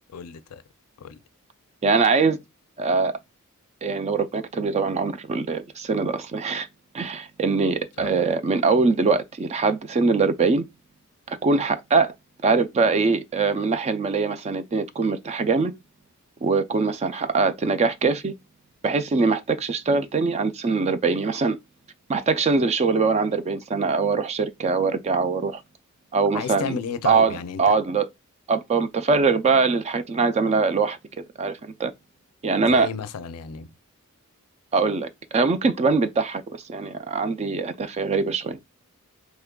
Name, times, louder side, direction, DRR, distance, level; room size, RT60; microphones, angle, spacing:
voice 1, 0.1-0.6 1.0-1.2 8.0-8.1 26.3-27.8 32.6-33.7, left 6 dB, 85° left, 0.4 m, -33 dB
voice 2, 1.8-2.4 2.8-3.2 3.8-6.7 6.9-10.6 11.3-12.1 12.4-15.7 16.4-18.3 18.8-21.6 22.1-25.6 26.1-26.8 27.0-28.1 28.5-31.0 31.4-31.9 32.4-32.9 34.7-38.6, right 4 dB, 30° right, 0.3 m, -22 dB
3.6 x 3.1 x 2.2 m
head